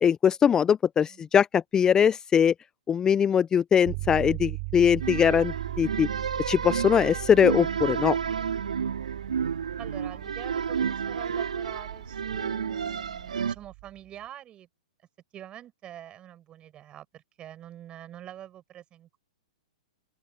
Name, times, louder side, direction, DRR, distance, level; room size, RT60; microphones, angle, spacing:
voice 1, 0.0-2.5 2.9-6.1 6.4-8.2, left 8 dB, 20° left, 0.6 m, -22 dB
sound 1, 3.9-14.0, right 40 dB or more, 40° right, 4.3 m, -39 dB
sound 2, 5.0-13.5, right 7 dB, 75° right, 2.4 m, -31 dB
voice 2, 9.8-14.7 15.3-19.2, right 11 dB, 25° right, 7.7 m, -45 dB
hypercardioid pair, 115°, 4 cm